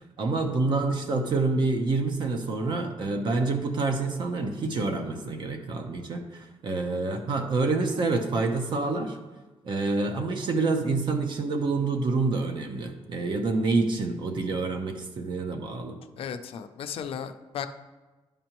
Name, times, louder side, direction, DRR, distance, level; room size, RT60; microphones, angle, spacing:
voice 1, 0.2-9.2 9.6-16.0, right 3 dB, 50° right, 5 dB, 0.8 m, -27 dB
voice 2, 16.2-17.7, left 8 dB, 70° left, 8 dB, 0.5 m, -35 dB
11.0 x 5.2 x 3.0 m, 1.2 s
wide cardioid pair, 175°, 10 cm